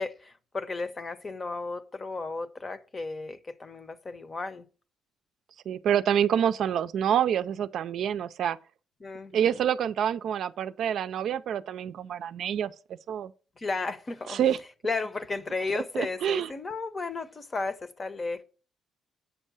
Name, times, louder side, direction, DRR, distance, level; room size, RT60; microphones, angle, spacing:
voice 1, 0.0-4.7 9.0-9.6 13.6-14.4 14.8-18.4, left 3 dB, 35° left, 0.8 m, -34 dB
voice 2, 5.7-8.6 9.3-12.7 13.1-13.3 14.3-14.6 15.9-16.5, right 9 dB, 70° right, 0.4 m, -27 dB
8.1 x 5.4 x 6.1 m
cardioid pair, 90°, 0 cm